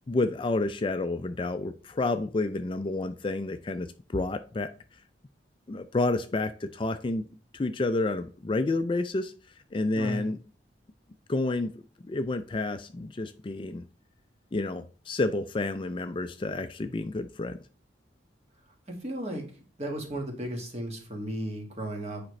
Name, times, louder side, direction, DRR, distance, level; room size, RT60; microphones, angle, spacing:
voice 1, 0.1-4.7 5.7-7.2 7.5-9.3 9.7-10.4 11.3-11.7 12.0-13.8 14.5-17.6, left 2 dB, 30° left, 9 dB, 0.4 m, -29 dB
voice 2, 9.9-10.3 18.9-19.4 19.8-22.2, right 1 dB, 35° right, 2 dB, 1.6 m, -34 dB
8.7 x 5.0 x 3.2 m, 0.37 s
head